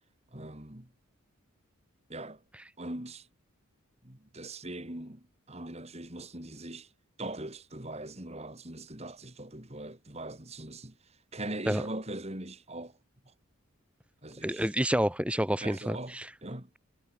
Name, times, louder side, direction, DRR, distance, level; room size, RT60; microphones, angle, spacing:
voice 1, 0.3-0.9 2.1-2.4 2.8-3.3 4.0-6.9 7.2-13.0 13.2-13.3 14.2-14.7 15.6-16.7, right 1 dB, 30° right, 2.9 m, -41 dB
voice 2, 14.4-16.3, equal, 5° right, 1.9 m, -29 dB
head